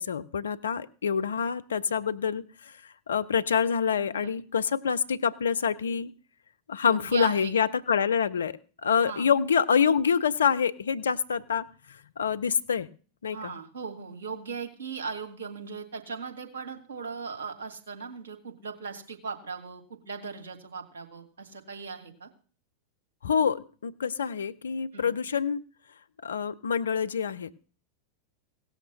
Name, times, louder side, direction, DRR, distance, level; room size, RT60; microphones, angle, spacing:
voice 1, 0.0-2.4 3.1-6.1 6.7-11.6 12.2-12.9 13.2-13.5 23.2-25.6 26.2-27.5, left 7 dB, 70° left, 13 dB, 0.5 m, -26 dB
voice 2, 4.0-4.3 6.8-7.5 9.0-9.3 13.3-22.3 24.9-25.1, right 5 dB, 65° right, 4 dB, 1.9 m, -38 dB
17.0 x 6.5 x 6.3 m, 0.40 s
figure-of-eight pair, 90°, 0 cm